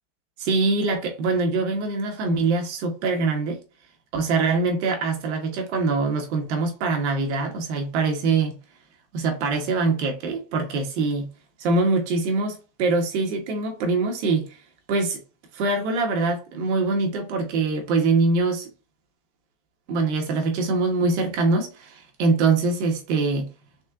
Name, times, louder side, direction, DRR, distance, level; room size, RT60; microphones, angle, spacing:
voice 1, 0.4-3.6 4.1-8.6 9.1-11.3 11.6-14.6 14.9-15.2 15.5-18.7 19.9-23.5, right 3 dB, 50° right, 1.2 m, -23 dB
4.2 x 3.7 x 2.4 m
supercardioid pair, 170°, 43 cm